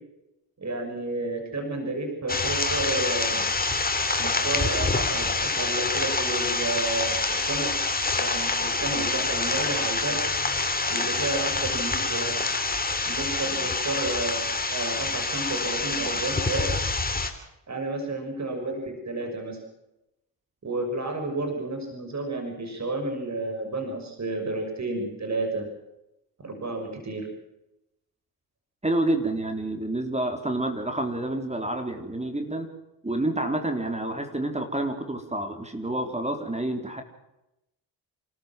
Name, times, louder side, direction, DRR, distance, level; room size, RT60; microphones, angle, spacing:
voice 1, 0.6-3.4 4.2-7.8 8.1-10.2 10.9-12.4 13.0-16.7 17.7-19.6 20.6-25.7 26.4-27.3, right 2 dB, 40° right, 4 dB, 6.4 m, -31 dB
sound 1, 2.3-17.3, left 3 dB, 20° left, 3.2 m, -26 dB
voice 2, 28.8-32.7 33.0-37.0, right 1 dB, 15° right, 6 dB, 3.7 m, -28 dB
28.0 x 13.5 x 7.6 m, 0.89 s
supercardioid pair, 55°, 43 cm